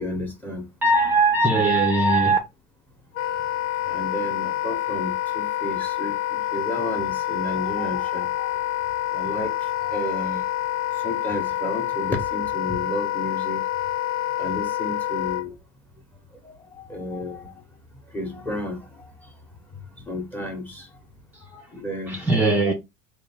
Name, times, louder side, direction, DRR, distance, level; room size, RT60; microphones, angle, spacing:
voice 1, 0.0-0.7 1.4-1.6 3.9-8.5 9.1-10.5 11.0-13.6 14.4-15.5 16.4-17.5 18.1-19.1 20.1-20.9 21.5-22.2 22.6-22.7, left 1 dB, 10° left, 0.9 m, -32 dB
voice 2, 0.8-2.4 22.1-22.7, right 2 dB, 10° right, 0.5 m, -19 dB
Wind instrument woodwind instrument, 3.2-15.4, left 13 dB, 90° left, 0.4 m, -27 dB
3.5 x 2.5 x 3.4 m
cardioid pair, 140°, 19 cm